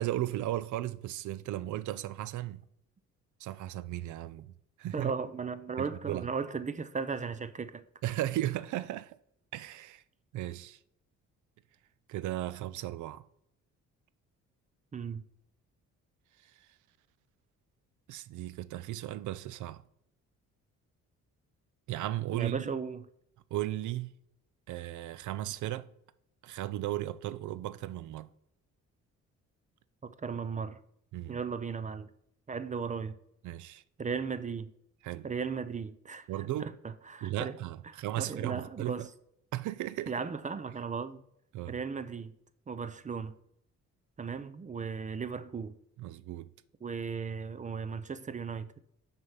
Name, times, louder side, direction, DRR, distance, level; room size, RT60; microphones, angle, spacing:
voice 1, 0.0-2.6 3.4-5.1 5.8-6.3 8.0-9.2 9.5-10.0 10.3-10.8 12.1-13.3 18.1-19.8 21.9-22.7 23.5-24.1 24.7-25.9 26.4-28.3 31.1-31.4 33.4-33.8 35.0-35.3 36.3-36.7 37.2-39.1 39.5-40.1 41.5-41.8 46.0-46.5, right 14 dB, 75° right, 0.5 m, -36 dB
voice 2, 4.9-7.8 14.9-15.2 22.3-23.1 30.0-30.8 31.3-32.1 32.5-33.2 34.0-34.7 35.2-37.6 38.2-39.1 40.1-41.2 41.7-42.3 42.7-43.4 44.2-45.8 46.8-48.8, right 5 dB, 25° right, 0.5 m, -36 dB
6.3 x 4.6 x 5.6 m
cardioid pair, 90°, 30 cm